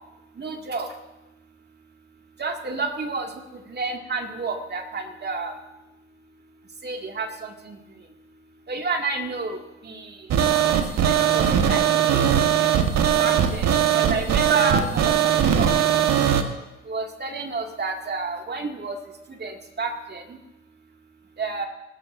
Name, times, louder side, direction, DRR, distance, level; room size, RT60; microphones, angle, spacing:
voice 1, 0.4-0.9 2.4-3.3 3.7-5.5 6.8-7.8 8.7-9.6 9.8-10.2 11.0-12.2 13.2-15.7 16.1-16.2 16.9-19.0 19.3-20.4 21.4-21.7, right 3 dB, 25° right, 3 dB, 2.2 m, -30 dB
sound 1, 10.3-16.4, right 9 dB, 45° right, 1.5 m, -20 dB
24.0 x 12.5 x 2.6 m, 1.0 s
hypercardioid pair, 65°, 36 cm